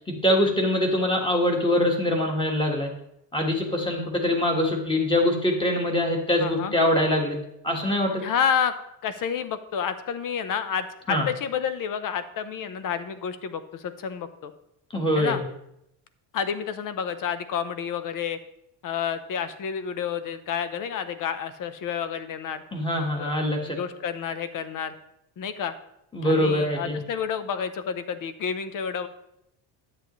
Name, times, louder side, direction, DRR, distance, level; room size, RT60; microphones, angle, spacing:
voice 1, 0.0-2.9 3.3-7.4 7.6-8.2 11.1-11.2 14.9-15.4 22.7-23.8 26.1-27.0, left 1 dB, 10° left, 1 dB, 1.5 m, -23 dB
voice 2, 6.4-6.7 8.2-8.7 9.0-14.5 15.2-15.4 16.3-18.4 18.8-22.6 23.1-23.4 23.6-24.9 25.4-25.7 26.2-29.1, left 7 dB, 50° left, 11 dB, 0.8 m, -29 dB
10.0 x 8.2 x 3.1 m, 0.79 s
cardioid pair, 135°, 43 cm